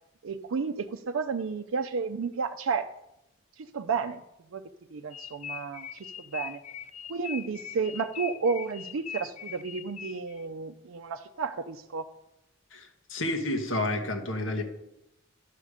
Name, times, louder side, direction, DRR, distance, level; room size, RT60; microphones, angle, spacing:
voice 1, 0.2-2.9 3.6-4.2 4.5-4.6 4.9-6.6 7.1-12.1, right 5 dB, 80° right, 6 dB, 0.5 m, -32 dB
sound 1, 5.1-10.4, left 8 dB, 35° left, 0.3 m, -41 dB
voice 2, 12.7-14.6, left 1 dB, 70° left, 4 dB, 1.5 m, -30 dB
12.0 x 6.7 x 4.9 m, 0.87 s
head